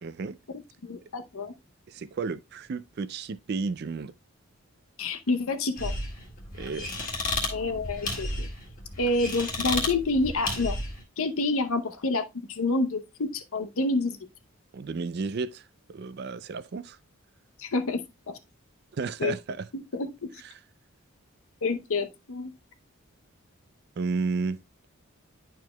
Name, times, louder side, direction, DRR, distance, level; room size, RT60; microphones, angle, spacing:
voice 1, 0.0-0.4 1.9-4.1 6.6-6.9 14.7-15.6 15.9-17.0 18.9-19.6 24.0-24.6, right 4 dB, 45° right, 0.3 m, -32 dB
voice 2, 0.5-1.5 5.0-5.9 7.5-8.5 9.0-10.8 11.2-14.2 17.6-18.3 19.2-19.3 19.7-20.3 21.6-22.5, left 2 dB, 70° left, 0.7 m, -28 dB
sound 1, 5.8-11.0, left 2 dB, 40° left, 1.7 m, -33 dB
10.5 x 4.6 x 2.2 m
head